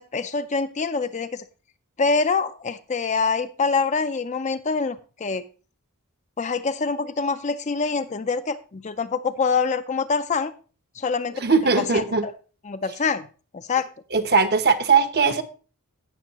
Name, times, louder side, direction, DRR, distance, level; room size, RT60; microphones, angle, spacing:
voice 1, 0.0-1.4 2.0-5.4 6.4-10.5 11.0-11.4 11.8-12.3 12.6-13.3 13.5-13.9, left 4 dB, 30° left, 11 dB, 0.5 m, -25 dB
voice 2, 11.3-12.3 14.1-15.4, right 5 dB, 45° right, 8 dB, 0.9 m, -19 dB
16.5 x 6.3 x 2.9 m, 0.36 s
head